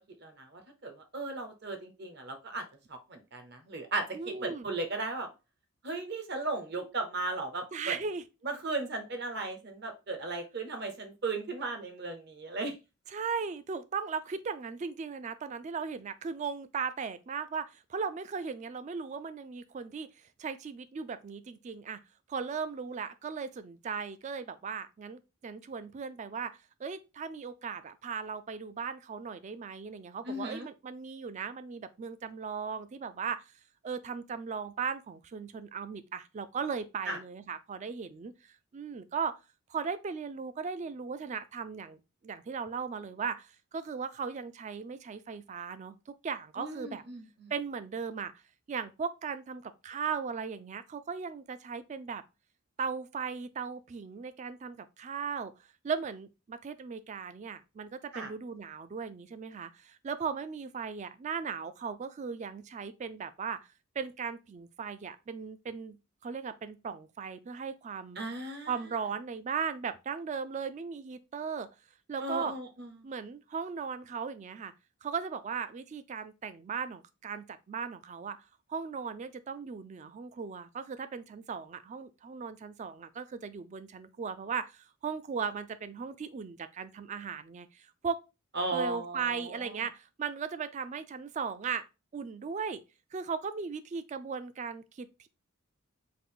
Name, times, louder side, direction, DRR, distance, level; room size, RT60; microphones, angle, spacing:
voice 1, 0.2-2.6 2.9-5.3 5.8-7.9 8.4-12.8 30.2-30.7 37.1-37.2 46.6-47.5 58.1-58.3 68.2-68.7 72.2-72.9 88.5-89.7, right 2 dB, 50° right, 0.8 m, -36 dB
voice 2, 4.1-4.7 7.7-8.2 13.1-20.1 20.4-22.0 22.3-33.4 33.8-39.4 39.7-47.0 47.5-48.3 48.7-52.2 52.8-55.5 55.8-63.6 64.0-66.0 66.2-68.2 68.7-71.7 72.1-72.5 73.0-74.7 75.0-78.4 78.7-88.2 88.7-91.9 92.1-92.8 93.1-95.3, right 6 dB, 35° right, 0.3 m, -37 dB
3.6 x 2.5 x 3.8 m
head